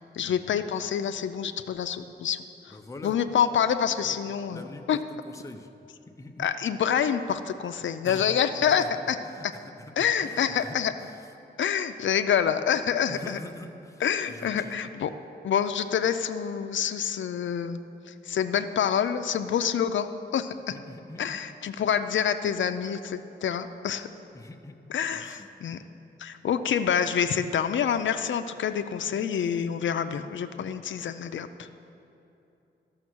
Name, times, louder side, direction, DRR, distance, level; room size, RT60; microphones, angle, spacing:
voice 1, 0.1-2.8 3.0-5.0 6.4-9.2 10.0-10.9 11.6-13.4 14.0-15.1 15.4-20.1 20.3-20.7 21.2-24.1 24.9-25.8 26.2-31.7, left 8 dB, 85° left, 9 dB, 0.4 m, -27 dB
voice 2, 2.7-3.2 4.0-4.2 4.5-5.7 6.2-6.5 8.0-8.3 8.6-9.9 10.2-11.3 13.1-14.0 14.3-14.7 20.7-21.4 24.3-24.8 25.1-25.5, left 2 dB, 15° left, 5 dB, 0.5 m, -44 dB
12.5 x 6.4 x 6.1 m, 2.8 s
wide cardioid pair, 140°, 19 cm